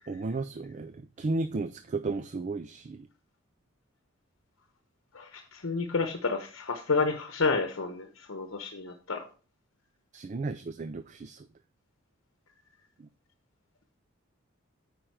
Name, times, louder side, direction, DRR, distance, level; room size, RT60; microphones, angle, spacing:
voice 1, 0.1-3.1 10.1-11.4, right 3 dB, 35° right, 10 dB, 0.4 m, -33 dB
voice 2, 5.1-9.2, left 4 dB, 70° left, 6 dB, 0.9 m, -30 dB
8.9 x 5.0 x 4.6 m, 0.36 s
head